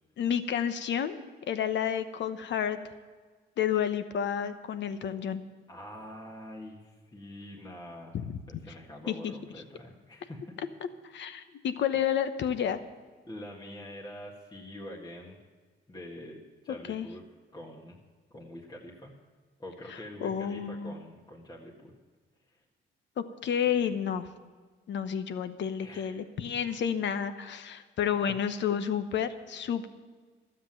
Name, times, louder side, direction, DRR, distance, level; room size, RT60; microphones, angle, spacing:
voice 1, 0.2-1.2 1.5-2.8 3.6-5.4 8.1-8.2 9.1-9.3 11.0-12.8 16.9-17.1 20.2-20.9 23.2-24.3 24.9-29.9, left 8 dB, 65° left, 11 dB, 1.0 m, -30 dB
voice 2, 5.7-8.1 8.5-10.6 13.3-15.4 15.9-17.2 17.5-18.0 18.3-19.2 19.6-21.9 22.5-22.6 25.8-26.2 28.3-28.4, left 1 dB, 20° left, -2 dB, 1.7 m, -45 dB
12.5 x 7.8 x 8.9 m, 1.5 s
cardioid pair, 90°, 20 cm